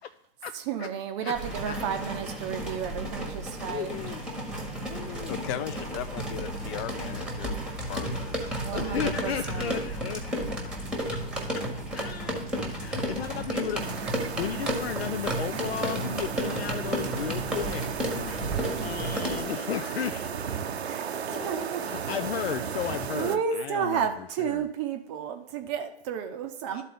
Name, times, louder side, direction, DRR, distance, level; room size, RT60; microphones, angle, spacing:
voice 1, 0.7-3.9 8.6-9.7 20.8-21.8 23.1-26.8, right 7 dB, 30° right, 6 dB, 0.6 m, -32 dB
sound 1, 1.3-19.4, right 1 dB, 5° right, 1.2 m, -33 dB
voice 2, 3.4-4.3 4.6-5.4 8.7-10.6 11.1-11.2 11.5-11.6 11.9-12.4 12.8-13.9 14.3-20.6 21.3-24.7 26.7-26.8, left 9 dB, 70° left, 9 dB, 0.5 m, -35 dB
voice 3, 5.3-8.7, left 10 dB, 25° left, 12 dB, 0.4 m, -37 dB
sound 2, 13.8-23.4, right 7 dB, 80° right, 0.7 m, -35 dB
12.0 x 4.1 x 3.7 m, 0.79 s
hypercardioid pair, 130°, 32 cm